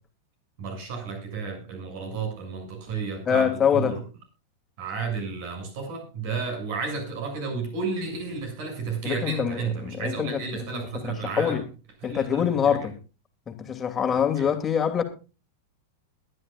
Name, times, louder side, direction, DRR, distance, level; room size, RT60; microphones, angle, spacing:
voice 1, 0.6-4.0 4.8-11.6 12.0-12.9 14.4-14.5, right 4 dB, 50° right, 6.7 m, -32 dB
voice 2, 3.3-4.0 9.0-10.4 10.7-11.6 12.0-12.9 13.5-15.0, left 8 dB, 20° left, 2.7 m, -25 dB
21.5 x 11.0 x 2.5 m
figure-of-eight pair, 95°, 0 cm